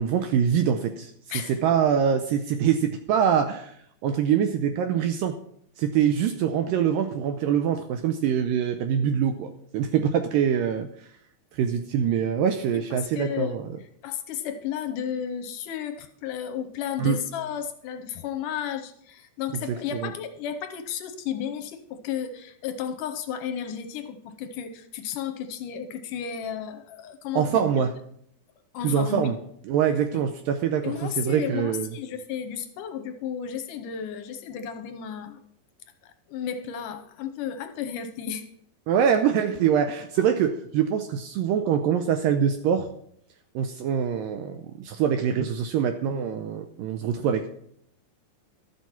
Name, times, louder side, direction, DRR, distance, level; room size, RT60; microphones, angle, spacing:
voice 1, 0.0-3.8 4.0-5.4 5.8-10.9 11.5-13.7 17.0-17.2 19.9-20.1 27.4-27.9 28.8-29.3 29.7-31.9 38.9-42.9 43.6-47.5, right 8 dB, 80° right, 8 dB, 2.1 m, -24 dB
voice 2, 1.3-1.6 13.1-27.8 28.7-29.3 30.1-30.2 30.8-35.4 36.0-38.5, left 8 dB, 75° left, 9 dB, 2.0 m, -33 dB
12.5 x 7.6 x 5.7 m, 0.69 s
omnidirectional pair, 4.5 m